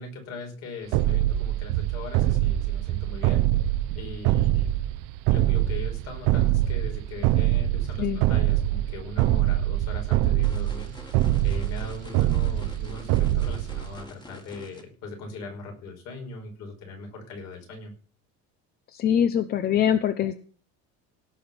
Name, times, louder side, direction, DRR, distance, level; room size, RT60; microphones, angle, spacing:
voice 1, 0.0-3.5 3.9-4.7 5.3-17.9, left 3 dB, 55° left, 3 dB, 5.3 m, -40 dB
sound 1, 0.9-14.0, right 14 dB, 85° right, 0.8 m, -24 dB
sound 2, 10.4-14.8, left 2 dB, 15° left, 1.9 m, -47 dB
voice 2, 18.9-20.4, left 9 dB, 30° left, 12 dB, 0.6 m, -23 dB
17.5 x 6.1 x 7.1 m, 0.43 s
cardioid pair, 175°, 31 cm